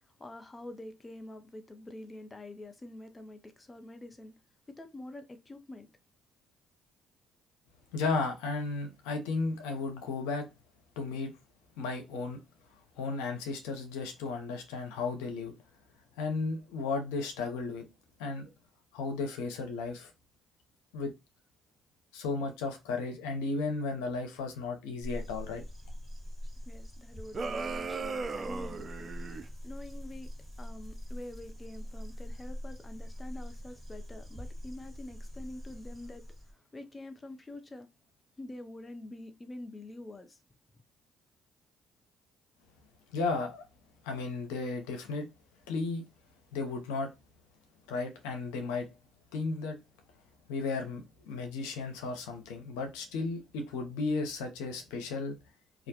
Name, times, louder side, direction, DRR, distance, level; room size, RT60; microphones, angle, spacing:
voice 1, 0.2-4.3 4.8-5.9 26.7-29.1 29.6-30.3 30.6-37.9 38.4-40.4, left 1 dB, 25° left, 0.5 m, -46 dB
voice 2, 7.9-10.5 11.0-11.3 11.8-12.4 13.0-15.5 16.2-17.9 18.2-18.5 18.9-20.1 20.9-21.1 22.1-25.6 43.1-43.6 44.0-45.3 45.7-46.0 46.5-47.1 47.9-48.9 49.3-49.8 50.5-55.3, left 3 dB, 90° left, 0.6 m, -34 dB
sound 1, 25.0-36.5, equal, 5° left, 1.4 m, -43 dB
sound 2, 27.3-29.5, right 4 dB, 40° right, 0.4 m, -36 dB
2.4 x 2.0 x 2.8 m
supercardioid pair, 65°, 0 cm